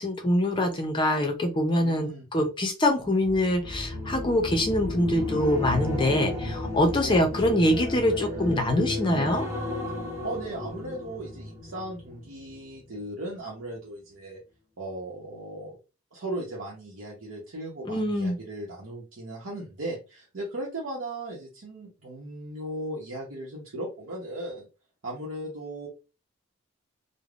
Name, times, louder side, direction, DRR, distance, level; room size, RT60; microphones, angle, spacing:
voice 1, 0.0-9.4 17.9-18.4, left 1 dB, 25° left, 5 dB, 0.5 m, -24 dB
voice 2, 1.8-2.3 7.0-7.5 9.0-9.4 10.2-14.4 14.8-15.8 16.1-24.7 25.0-25.9, right 1 dB, 85° right, -3 dB, 0.8 m, -37 dB
sound 1, 3.2-12.6 12.9-13.2, left 2 dB, 15° right, 0.9 m, -33 dB
3.3 x 2.1 x 2.4 m, 0.30 s
head